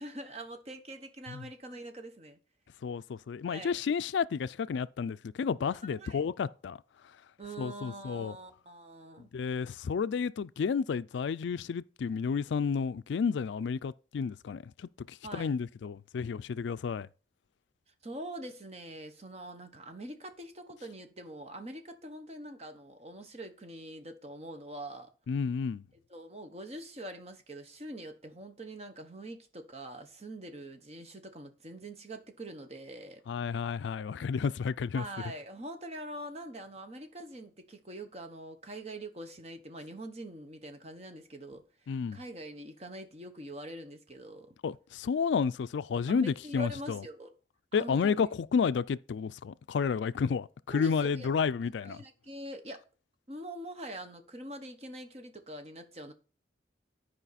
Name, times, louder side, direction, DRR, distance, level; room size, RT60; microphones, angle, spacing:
voice 1, 0.0-2.4 3.5-3.8 5.8-6.2 7.4-9.3 15.2-15.5 18.0-25.1 26.1-33.2 34.9-44.5 46.1-47.3 47.7-48.1 50.7-51.3 51.8-52.8 53.3-56.1, right 1 dB, 35° right, 1.1 m, -44 dB
voice 2, 2.8-6.8 7.6-8.4 9.2-17.1 25.3-25.8 33.3-35.0 41.9-42.2 44.6-47.0 47.7-52.0, left 6 dB, 75° left, 0.3 m, -31 dB
11.5 x 5.0 x 4.1 m
head